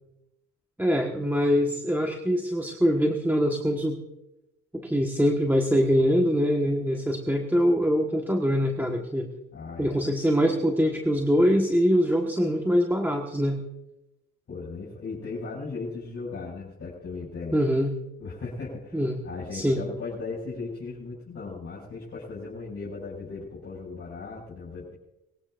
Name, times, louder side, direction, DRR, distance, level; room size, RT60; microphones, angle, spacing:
voice 1, 0.8-4.0 4.8-9.3 9.8-13.6 17.5-17.9 18.9-19.2 19.5-19.8, equal, 5° right, 1 dB, 1.5 m, -23 dB
voice 2, 9.5-10.0 14.5-17.6 18.2-25.0, left 4 dB, 50° left, -6 dB, 6.2 m, -37 dB
22.5 x 16.5 x 2.6 m, 0.93 s
cardioid pair, 90°, 30 cm